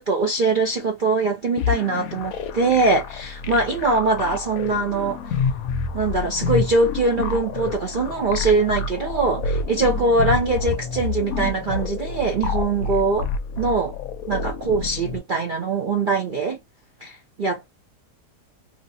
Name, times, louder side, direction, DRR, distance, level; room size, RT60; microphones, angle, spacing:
voice 1, 0.0-5.2 5.9-13.3 13.6-13.9 14.3-16.6 17.0-17.6, right 3 dB, 65° right, 0.4 m, -22 dB
sound 1, 1.6-15.2, left 4 dB, 70° left, 0.9 m, -28 dB
2.9 x 2.6 x 2.6 m
omnidirectional pair, 1.8 m